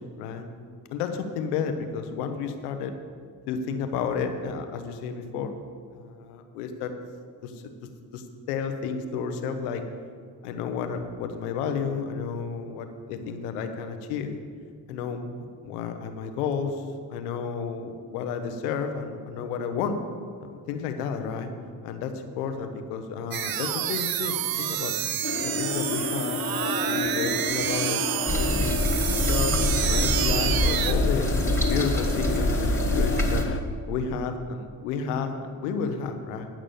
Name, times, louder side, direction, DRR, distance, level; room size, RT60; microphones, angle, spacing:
voice 1, 0.2-0.5 0.9-2.9 3.5-5.5 5.9-6.9 7.4-7.5 8.1-9.8 10.4-14.3 14.9-16.8 17.1-20.0 20.4-21.5 21.8-25.0 25.4-28.0 28.3-28.8 29.3-29.6 29.9-31.3 31.7-33.5 33.9-36.5, left 6 dB, 90° left, 7 dB, 0.9 m, -31 dB
sound 1, 23.3-30.9, right 11 dB, 50° right, 0.7 m, -28 dB
sound 2, 25.2-33.6, left 4 dB, 30° left, 0.9 m, -31 dB
sound 3, 28.3-33.4, left 1 dB, 5° left, 2.0 m, -25 dB
10.5 x 6.1 x 6.8 m, 2.1 s
hypercardioid pair, 45°, 45 cm